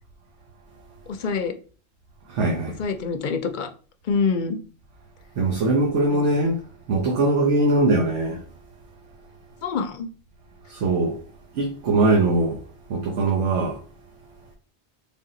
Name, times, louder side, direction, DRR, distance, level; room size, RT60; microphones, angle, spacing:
voice 1, 1.2-1.5 2.8-3.7 4.1-4.6 6.1-6.2 9.6-10.1, left 5 dB, 55° left, 0.6 m, -25 dB
voice 2, 2.3-2.8 5.4-6.6 6.9-8.4 10.7-11.2 11.5-12.6 12.9-13.8, right 2 dB, 90° right, 1.1 m, -21 dB
3.5 x 2.7 x 3.7 m
omnidirectional pair, 1.2 m